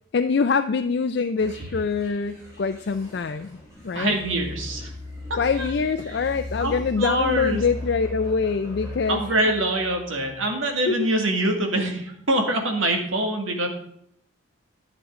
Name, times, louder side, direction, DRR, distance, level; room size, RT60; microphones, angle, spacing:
voice 1, 0.1-4.1 5.4-9.2 10.9-11.1, left 5 dB, 55° left, 8 dB, 0.4 m, -24 dB
sound 1, 1.4-10.6, left 2 dB, 15° right, 3.6 m, -38 dB
voice 2, 3.9-4.9 5.3-5.7 6.6-7.6 9.1-13.7, right 1 dB, 85° right, 3 dB, 2.0 m, -24 dB
11.0 x 8.4 x 3.7 m, 0.70 s
head